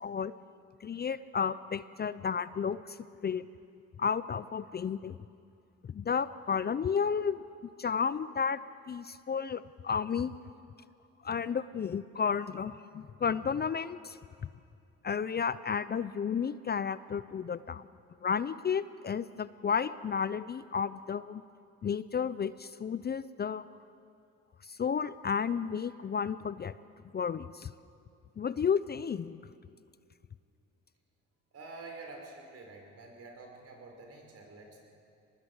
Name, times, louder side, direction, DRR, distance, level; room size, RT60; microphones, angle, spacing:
voice 1, 0.0-0.4 0.8-3.0 3.2-3.5 4.0-5.2 5.9-7.4 7.8-8.6 8.9-10.3 11.2-14.2 15.0-17.8 18.2-21.4 21.8-23.6 24.7-26.7 27.1-27.7 28.4-29.4, left 6 dB, 35° left, 15 dB, 0.5 m, -32 dB
voice 2, 31.5-34.8, right 3 dB, 55° right, 1 dB, 5.5 m, -48 dB
24.5 x 19.5 x 8.1 m, 2.4 s
cardioid pair, 90°, 30 cm